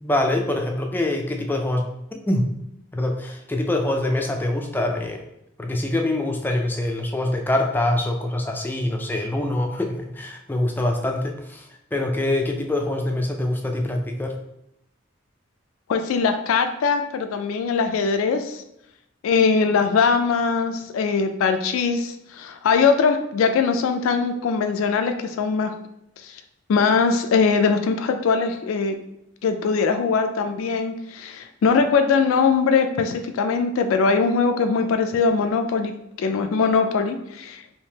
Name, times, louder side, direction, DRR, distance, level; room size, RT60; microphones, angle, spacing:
voice 1, 0.0-2.5 2.9-5.2 5.6-14.4, left 1 dB, 10° left, 2 dB, 0.3 m, -24 dB
voice 2, 15.9-18.6 19.2-25.7 26.2-26.4 26.7-29.0 29.4-37.6, left 5 dB, 90° left, 7 dB, 0.3 m, -21 dB
3.5 x 2.7 x 2.8 m, 0.80 s
head